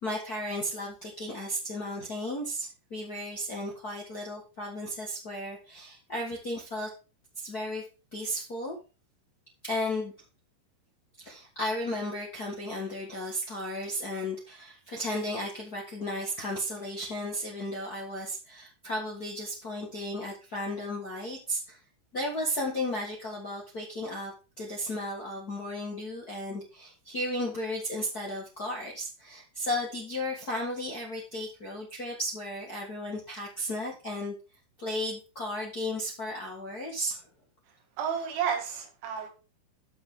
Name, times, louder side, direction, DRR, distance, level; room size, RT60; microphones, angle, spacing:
voice 1, 0.0-6.9 7.3-7.8 8.1-8.7 9.6-10.1 11.2-21.8 22.1-34.3 34.8-37.2, left 1 dB, 80° left, -2 dB, 0.8 m, -34 dB
voice 2, 38.0-39.3, right 7 dB, 85° right, 3 dB, 4.3 m, -31 dB
11.0 x 6.8 x 3.7 m, 0.32 s
omnidirectional pair, 5.2 m